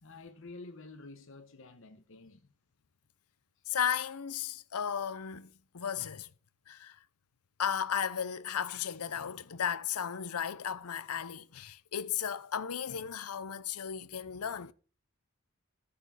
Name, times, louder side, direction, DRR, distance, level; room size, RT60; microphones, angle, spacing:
voice 1, 0.0-2.5 3.6-3.7, left 3 dB, 60° left, 1.0 m, -50 dB
voice 2, 3.7-6.3 6.7-7.0 7.6-14.7, left 8 dB, 85° left, 0.7 m, -35 dB
13.5 x 6.8 x 4.1 m
head